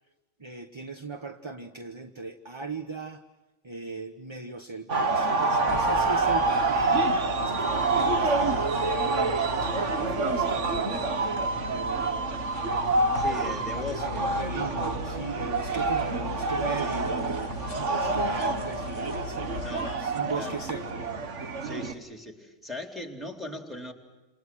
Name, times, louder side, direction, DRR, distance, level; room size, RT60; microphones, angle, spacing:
voice 1, 0.4-3.2 3.6-7.0 7.4-11.0 11.7-12.4 13.2-19.6 20.0-21.0, right 3 dB, 25° right, 6 dB, 1.2 m, -38 dB
sound 1, 4.9-21.9, right 3 dB, 80° right, 1.8 m, -27 dB
sound 2, 5.7-20.0, left 6 dB, 60° left, 1.4 m, -40 dB
voice 2, 13.1-14.3 14.7-14.9 17.7-17.8 19.6-19.9 20.3-20.6 21.6-23.9, left 2 dB, ahead, 5 dB, 3.6 m, -39 dB
29.0 x 28.0 x 6.2 m, 1.1 s
omnidirectional pair, 1.2 m